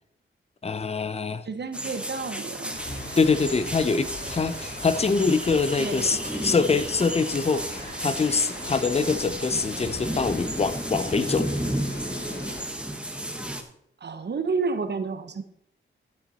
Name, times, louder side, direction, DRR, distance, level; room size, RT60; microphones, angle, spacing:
voice 1, 0.6-1.4 3.2-7.6 8.0-11.6, left 4 dB, 30° left, 13 dB, 0.6 m, -24 dB
voice 2, 1.4-2.8 5.8-6.2 14.0-15.4, right 4 dB, 55° right, 10 dB, 0.9 m, -30 dB
sound 1, 1.7-13.6, right 1 dB, 5° right, 1.2 m, -33 dB
sound 2, 2.7-12.6, left 1 dB, 50° left, 2.3 m, -40 dB
sound 3, 4.2-9.4, right 2 dB, 35° right, 1.9 m, -43 dB
12.0 x 8.2 x 4.1 m, 0.75 s
wide cardioid pair, 120°, 21 cm